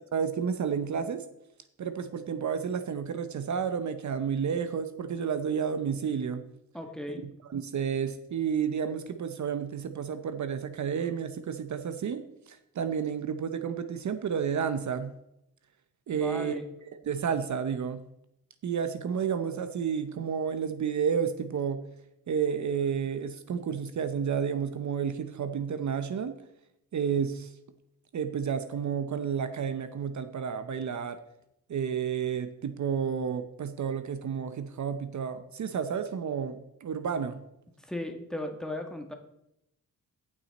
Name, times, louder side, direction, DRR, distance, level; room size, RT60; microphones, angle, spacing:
voice 1, 0.1-1.2 1.8-6.5 7.5-15.1 16.1-16.6 17.1-18.0 18.6-21.8 22.3-26.4 26.9-27.5 28.1-31.2 31.7-37.4, right 7 dB, 55° right, 9 dB, 0.8 m, -31 dB
voice 2, 6.7-7.2 16.1-16.7 37.9-39.1, left 1 dB, ahead, 3 dB, 1.6 m, -36 dB
16.5 x 6.0 x 4.1 m, 0.82 s
cardioid pair, 95°, 34 cm